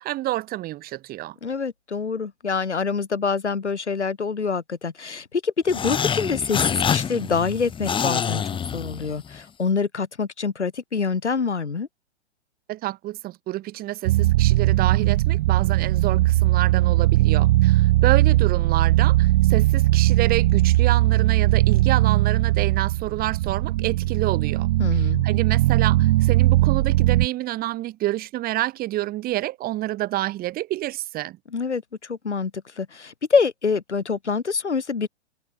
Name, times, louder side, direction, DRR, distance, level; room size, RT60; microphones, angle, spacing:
voice 1, 0.0-1.4 12.7-31.4, right 16 dB, 25° right, 4.2 m, -28 dB
voice 2, 1.4-8.4 8.7-11.9 24.8-25.3 31.5-35.1, left 5 dB, 75° left, 4.7 m, -25 dB
sound 1, 5.7-9.4, left 7 dB, 15° left, 3.5 m, -26 dB
sound 2, 14.1-27.3, right 17 dB, 45° right, 1.6 m, -19 dB
figure-of-eight pair, 115°, 34 cm